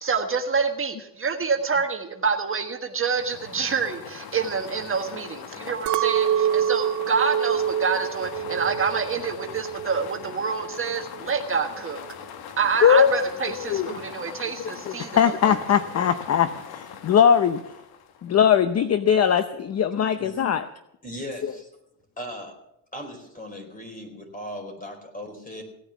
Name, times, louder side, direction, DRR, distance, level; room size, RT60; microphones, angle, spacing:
voice 1, 0.0-12.0 12.6-15.2 15.4-15.5, right 5 dB, 30° right, 4 dB, 1.4 m, -27 dB
sound 1, 3.0-18.4, left 8 dB, 65° left, 1.4 m, -41 dB
Chink clink, 5.9-10.3 10.6-11.2, right 9 dB, 50° right, 0.5 m, -26 dB
voice 2, 12.8-13.9 14.9-17.6 18.2-20.6, left 8 dB, 40° left, 11 dB, 0.7 m, -20 dB
voice 3, 20.2-20.5 21.0-21.7 22.2-22.6 22.9-25.6, equal, 20° left, 4 dB, 4.4 m, -38 dB
17.0 x 9.2 x 7.1 m, 0.83 s
cardioid pair, 105°, 39 cm